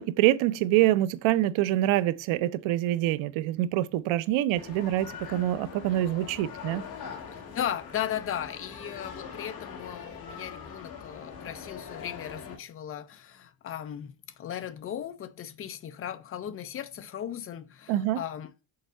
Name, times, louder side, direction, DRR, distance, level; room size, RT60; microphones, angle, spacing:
voice 1, 0.0-6.8 17.9-18.2, right 14 dB, 85° right, 0.6 m, -25 dB
sound 1, 4.5-12.6, left 6 dB, 50° left, 1.9 m, -42 dB
voice 2, 7.3-18.5, left 10 dB, 30° left, 0.4 m, -37 dB
6.7 x 4.5 x 5.3 m
cardioid pair, 180°, 46 cm